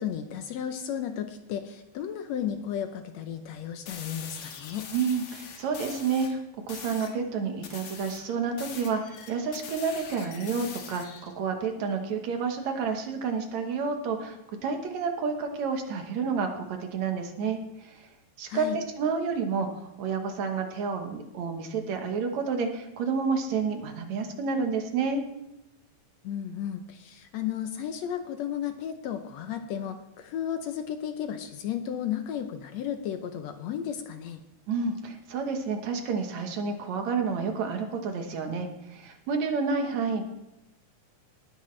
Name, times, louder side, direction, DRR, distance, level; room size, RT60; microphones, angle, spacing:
voice 1, 0.0-4.9 18.5-18.8 26.2-34.4, left 9 dB, 70° left, 7 dB, 1.8 m, -34 dB
sound 1, 3.9-6.3 6.7-7.2 7.6-11.3, left 6 dB, 90° left, 3.0 m, -43 dB
voice 2, 4.9-6.4 6.7-18.1 18.4-25.3 34.7-40.2, right 5 dB, 70° right, 4 dB, 2.4 m, -30 dB
19.0 x 9.9 x 3.2 m, 0.91 s
omnidirectional pair, 3.5 m